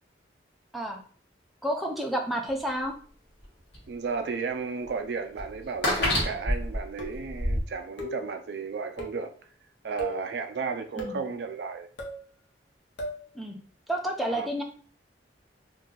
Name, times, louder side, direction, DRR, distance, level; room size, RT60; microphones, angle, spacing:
voice 1, 1.6-2.9 11.0-11.2 13.3-13.6 13.9-14.6, right 1 dB, ahead, 0.4 m, -30 dB
sound 1, 3.4-3.5 3.7-3.9 4.9-5.0 5.4-7.6, left 1 dB, 65° left, 1.3 m, -27 dB
voice 2, 3.9-9.3 9.8-11.9 14.3-14.5, right 5 dB, 65° right, 0.3 m, -34 dB
sound 2, 6.0-6.4 7.0-7.4 8.0-8.3 9.0-9.3 10.0-10.3 11.0-11.3 12.0-12.2 13.0-13.2, equal, 85° left, 0.8 m, -37 dB
2.6 x 2.3 x 3.8 m
head